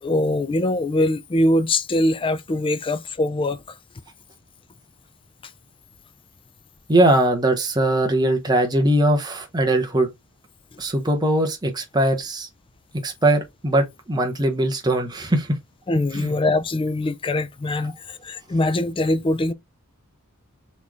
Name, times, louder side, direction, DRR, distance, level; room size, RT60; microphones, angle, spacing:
voice 1, 0.0-3.6 15.9-19.5, left 1 dB, 25° left, 0.4 m, -22 dB
voice 2, 6.9-10.1 10.8-12.5 13.0-15.6 16.1-16.3, right 1 dB, 20° right, 0.9 m, -20 dB
4.1 x 3.1 x 3.5 m
head